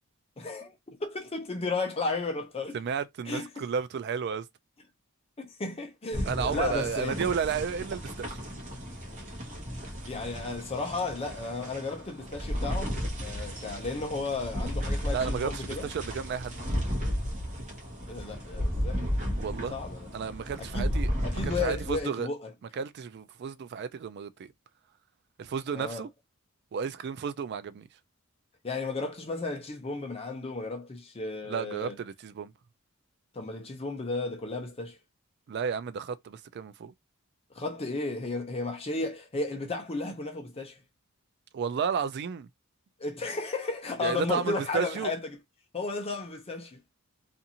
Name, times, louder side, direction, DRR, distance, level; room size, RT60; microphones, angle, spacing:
voice 1, 0.4-2.8 3.3-3.6 5.4-7.2 10.1-15.9 18.1-19.2 19.7-20.1 20.6-20.9 21.2-22.5 25.7-26.0 28.6-31.9 33.3-35.0 37.5-40.8 43.0-45.4 45.7-46.8, left 3 dB, 30° left, 0.6 m, -34 dB
voice 2, 2.7-4.5 6.3-8.4 15.1-16.6 19.4-19.8 20.1-21.1 21.4-22.3 22.7-24.5 25.4-26.1 26.7-27.9 31.5-32.5 35.5-36.9 41.5-42.5 44.0-45.1, right 6 dB, 50° right, 0.3 m, -32 dB
sound 1, 6.1-22.0, equal, 35° right, 1.0 m, -34 dB
2.6 x 2.4 x 2.8 m
head